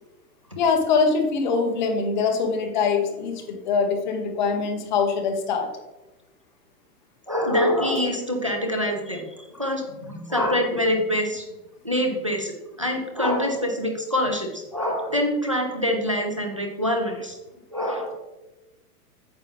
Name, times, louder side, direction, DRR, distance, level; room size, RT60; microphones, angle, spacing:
voice 1, 0.6-5.7, left 5 dB, 30° left, 4 dB, 1.0 m, -23 dB
voice 2, 7.3-11.4 11.8-12.5 12.8-17.4 17.7-18.1, left 1 dB, 25° right, 1 dB, 0.3 m, -25 dB
9.0 x 6.5 x 3.4 m, 1.1 s
hypercardioid pair, 175°, 46 cm